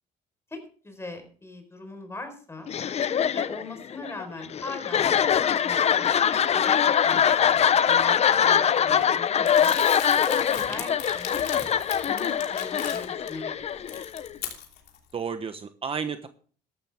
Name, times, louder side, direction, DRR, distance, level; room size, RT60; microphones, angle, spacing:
voice 1, 0.5-2.7 3.3-9.8 10.2-11.4 11.8-13.6, left 2 dB, 15° left, 6 dB, 4.4 m, -40 dB
sound 1, 2.7-14.4, left 8 dB, 40° left, 0.7 m, -23 dB
voice 2, 8.6-9.3 15.1-16.3, right 6 dB, 35° right, 9 dB, 1.0 m, -34 dB
Crumpling crinkling, 9.5-13.3 13.7-15.0, left 9 dB, 70° left, 3.1 m, -38 dB
14.0 x 12.0 x 3.6 m, 0.42 s
cardioid pair, 110°, 17 cm